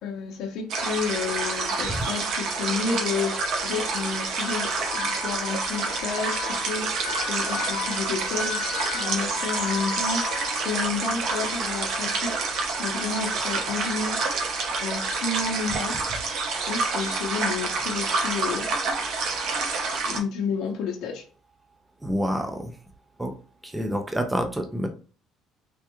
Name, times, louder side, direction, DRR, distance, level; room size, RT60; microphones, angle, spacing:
voice 1, 0.0-6.9 7.3-10.2 10.6-14.3 14.8-16.0 16.7-18.7 20.0-21.3, left 5 dB, 65° left, 0.6 m, -31 dB
sound 1, 0.7-20.2, right 4 dB, 60° right, 0.8 m, -28 dB
Wind instrument woodwind instrument, 4.7-10.5, left 7 dB, 25° left, 1.2 m, -35 dB
voice 2, 22.0-22.7 23.2-23.3 23.6-24.9, equal, 5° right, 0.4 m, -27 dB
3.4 x 2.2 x 2.9 m
cardioid pair, 165°, 0 cm